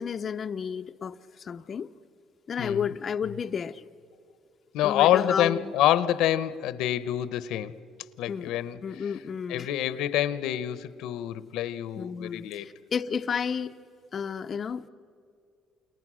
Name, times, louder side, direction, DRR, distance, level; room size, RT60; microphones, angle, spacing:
voice 1, 0.0-1.9 2.5-3.8 4.8-5.7 8.3-8.5 8.8-9.7 12.0-13.8 14.1-14.9, left 6 dB, 35° left, 0.6 m, -32 dB
voice 2, 4.7-7.7 8.2-8.8 9.5-12.7, left 12 dB, 85° left, 0.9 m, -26 dB
29.5 x 28.5 x 6.3 m
cardioid pair, 145°, 0 cm